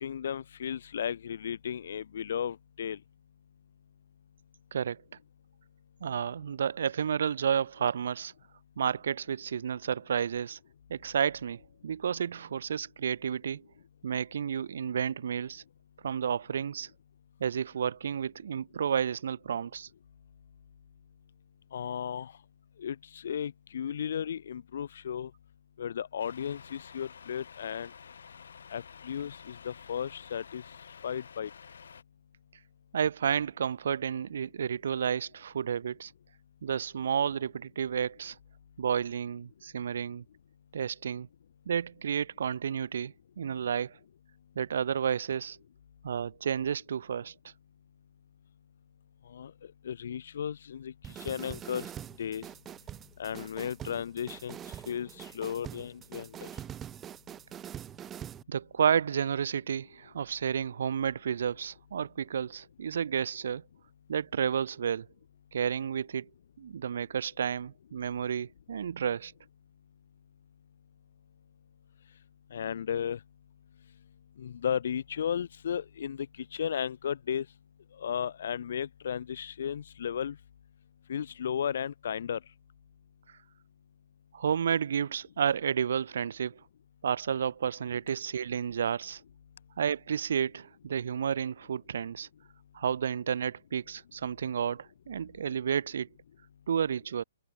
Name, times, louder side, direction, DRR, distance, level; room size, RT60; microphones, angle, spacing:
voice 1, 0.0-3.0 21.7-22.3 22.8-25.3 25.8-27.9 28.7-30.6 31.0-31.5 49.3-49.5 49.8-51.9 52.2-52.4 53.2-54.6 54.9-56.5 72.5-73.2 74.4-77.5 78.0-80.4 81.1-82.4, left 8 dB, 65° left, 2.4 m, -34 dB
voice 2, 4.7-5.0 6.0-8.3 8.8-10.6 10.9-13.6 14.0-15.6 16.0-16.9 17.4-19.9 32.9-36.1 36.6-38.4 38.8-40.2 40.7-41.3 41.7-44.0 44.6-45.6 46.0-47.3 58.5-63.6 64.1-65.1 65.5-66.3 66.6-69.3 84.3-86.6 87.0-89.2 89.8-92.3 92.7-96.1 96.7-97.2, right 8 dB, 70° right, 0.8 m, -31 dB
Truck, 26.2-32.0, left 6 dB, 80° left, 4.7 m, -50 dB
sound 1, 51.0-58.4, right 10 dB, 15° right, 1.1 m, -44 dB
hypercardioid pair, 155°, 0 cm